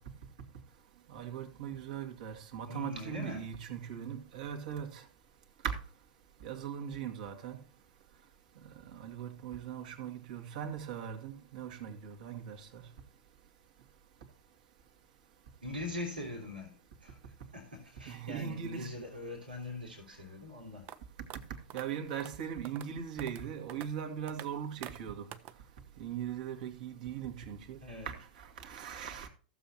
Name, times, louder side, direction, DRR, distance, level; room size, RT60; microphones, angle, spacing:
voice 1, 1.1-5.0 5.6-5.8 6.4-7.6 8.9-12.9 18.1-18.9 21.7-25.3 26.0-27.8 28.1-29.3, right 8 dB, 60° right, 2.2 m, -40 dB
voice 2, 2.7-3.5 15.6-20.9 27.8-28.1, left 2 dB, 85° right, 3.0 m, -42 dB
sound 1, 20.9-21.0 21.3-21.4 21.7-21.8 22.2-22.3 22.6-22.9 23.2-23.4 23.7-23.9 24.3-24.5 24.8-25.0 25.3-25.5, right 12 dB, 40° right, 0.7 m, -45 dB
15.0 x 7.1 x 2.8 m
figure-of-eight pair, 95°, 5 cm